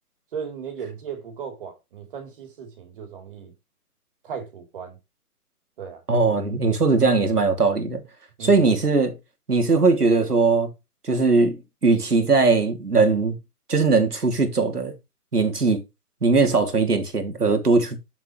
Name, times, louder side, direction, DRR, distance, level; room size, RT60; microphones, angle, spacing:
voice 1, 0.3-3.5 4.2-5.0 5.8-6.0 8.4-8.7, right 7 dB, 35° right, 3.7 m, -36 dB
voice 2, 6.1-8.0 8.4-9.2 9.5-10.7 11.0-13.4 13.7-14.9 15.3-15.8 16.2-18.0, right 4 dB, 85° right, 3.1 m, -20 dB
9.3 x 7.1 x 3.2 m
figure-of-eight pair, 150°, 45 cm